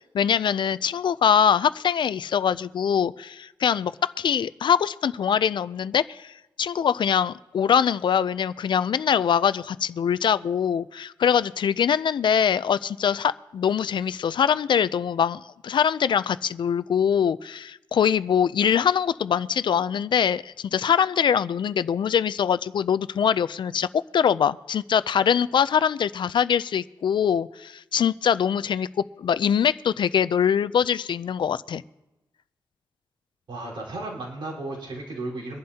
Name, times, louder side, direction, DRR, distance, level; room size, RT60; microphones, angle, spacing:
voice 1, 0.1-28.9 29.2-31.8, left 8 dB, 65° left, 16 dB, 0.4 m, -23 dB
voice 2, 33.5-35.6, right 2 dB, 75° right, -4 dB, 4.2 m, -34 dB
24.0 x 11.0 x 2.8 m, 0.98 s
wide cardioid pair, 155°, 9 cm